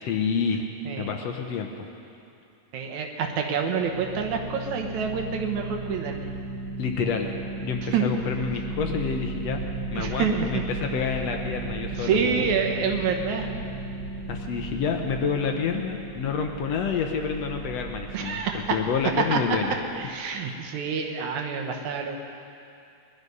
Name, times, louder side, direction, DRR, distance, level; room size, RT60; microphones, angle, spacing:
voice 1, 0.0-0.7 1.0-1.9 6.8-7.3 7.6-9.6 9.9-12.4 14.3-18.4 18.7-19.7 20.5-20.6, left 6 dB, 70° left, 3 dB, 1.8 m, -28 dB
voice 2, 2.7-6.2 7.9-8.1 10.0-10.6 12.0-13.5 18.1-18.6 19.3-19.4 20.0-22.2, right 6 dB, 75° right, 3 dB, 2.5 m, -27 dB
sound 1, 3.8-20.0, right 3 dB, 55° right, 2.1 m, -35 dB
20.5 x 12.0 x 5.4 m, 2.6 s
omnidirectional pair, 3.4 m